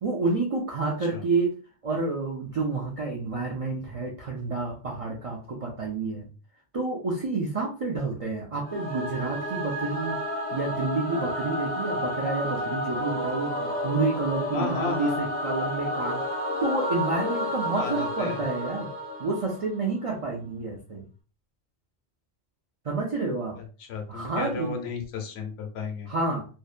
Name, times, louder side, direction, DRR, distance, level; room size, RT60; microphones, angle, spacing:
voice 1, 0.0-1.6 1.8-6.3 6.7-10.2 10.5-16.2 16.6-18.9 19.2-21.1 22.8-23.6 24.1-24.7 26.1-26.5, right 3 dB, 60° right, -1 dB, 0.3 m, -29 dB
Singing / Musical instrument, 8.6-19.9, left 1 dB, 10° left, 0.5 m, -31 dB
voice 2, 14.5-15.2 17.8-18.4 23.8-26.1, left 4 dB, 70° left, 5 dB, 0.9 m, -33 dB
2.7 x 2.1 x 2.4 m, 0.36 s
omnidirectional pair, 1.1 m